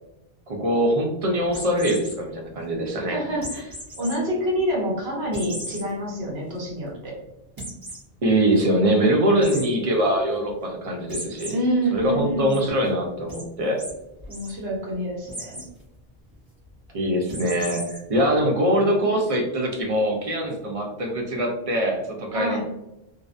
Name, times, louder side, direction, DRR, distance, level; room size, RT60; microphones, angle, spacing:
voice 1, 0.5-3.2 8.2-11.6 11.9-13.8 16.9-22.6, right 1 dB, 50° right, 1 dB, 0.5 m, -23 dB
sound 1, 1.5-2.1 3.4-4.1 4.6-4.7 5.3-5.8 6.3-6.4 6.7-6.8 7.6-8.0 9.4-9.6 11.1-11.5 12.0-12.6 13.3-13.4 13.8-13.9 14.2-14.5 15.3-15.7 17.3-18.0, equal, 20° right, 0.9 m, -35 dB
voice 2, 3.0-7.2 11.5-12.5 14.3-15.6 22.3-22.6, equal, 75° right, -3 dB, 1.1 m, -27 dB
2.5 x 2.1 x 2.4 m, 0.91 s
omnidirectional pair, 1.1 m